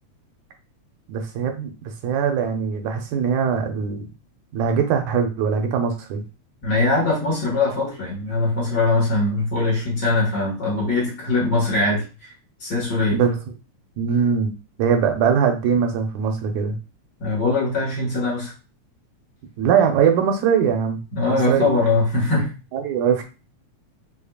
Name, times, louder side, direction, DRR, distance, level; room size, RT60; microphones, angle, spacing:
voice 1, 1.1-4.1 4.5-6.2 13.1-13.4 14.0-14.5 14.8-16.8 19.6-21.0 21.3-21.7 22.7-23.2, right 7 dB, 80° right, 5 dB, 2.0 m, -21 dB
voice 2, 6.6-12.3 12.6-13.2 17.2-18.5 21.1-22.5, left 2 dB, 40° left, -4 dB, 1.9 m, -21 dB
5.1 x 2.8 x 2.3 m, 0.31 s
omnidirectional pair, 3.4 m